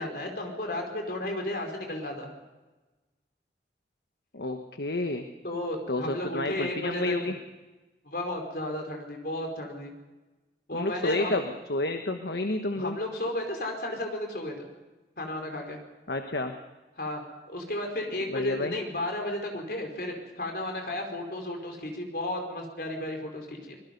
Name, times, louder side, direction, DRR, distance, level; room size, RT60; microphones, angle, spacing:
voice 1, 0.0-2.3 5.4-7.3 8.0-9.9 10.7-11.4 12.8-14.7 15.2-15.8 17.0-17.2 17.5-23.8, left 1 dB, 55° left, 3 dB, 4.7 m, -33 dB
voice 2, 4.3-5.3 5.9-7.3 10.7-13.0 16.1-16.5 18.3-18.7, left 2 dB, 70° left, 6 dB, 1.3 m, -30 dB
25.0 x 20.5 x 5.4 m, 1.2 s
head